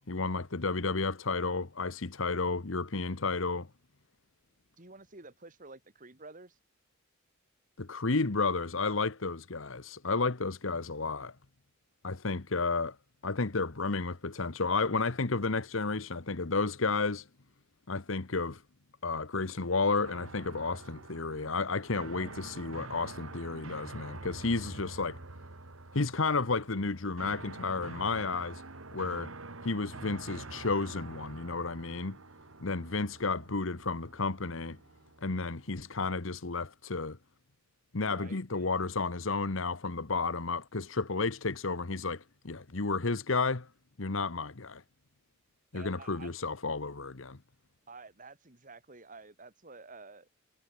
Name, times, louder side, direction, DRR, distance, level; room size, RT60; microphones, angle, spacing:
voice 1, 0.0-3.7 7.8-11.3 12.0-12.9 13.2-17.3 17.9-18.6 19.0-25.2 25.9-28.6 28.9-29.3 29.6-32.2 32.6-34.8 35.2-37.2 37.9-43.7 44.0-44.8 45.7-47.4, left 3 dB, 70° left, 1.2 m, -32 dB
voice 2, 4.8-6.6 22.2-22.7 38.0-38.7 45.7-46.3 47.9-50.3, right 3 dB, 40° right, 2.9 m, -51 dB
sound 1, 20.0-36.0, right 2 dB, 80° right, 2.5 m, -47 dB
head